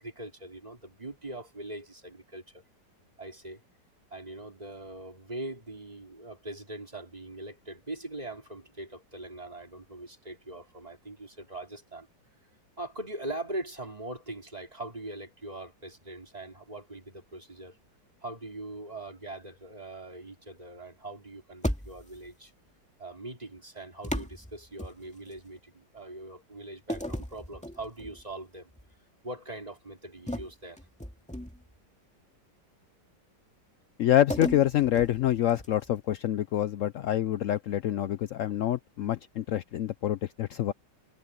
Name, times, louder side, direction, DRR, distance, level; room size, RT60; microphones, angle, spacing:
voice 1, 0.0-2.6 3.2-3.6 4.1-12.1 12.8-17.8 18.2-22.5 23.0-28.7 29.2-30.8, right 2 dB, 20° right, 3.6 m, -41 dB
sound 1, 21.6-22.3 24.0-25.4 26.9-28.2 28.7-28.9 30.3-31.8 34.3-35.9, equal, 5° left, 2.1 m, -36 dB
voice 2, 34.0-40.7, left 12 dB, 80° left, 0.7 m, -26 dB
omnidirectional pair, 1.9 m